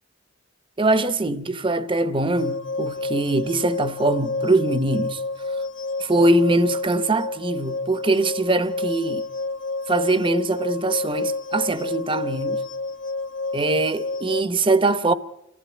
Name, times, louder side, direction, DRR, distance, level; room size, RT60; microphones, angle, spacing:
voice 1, 0.8-5.2 6.0-9.2 9.9-12.6 13.5-15.1, right 2 dB, 25° right, 0.9 m, -22 dB
sound 1, 2.4-14.4, left 3 dB, 70° left, 1.1 m, -29 dB
28.5 x 15.0 x 9.0 m
head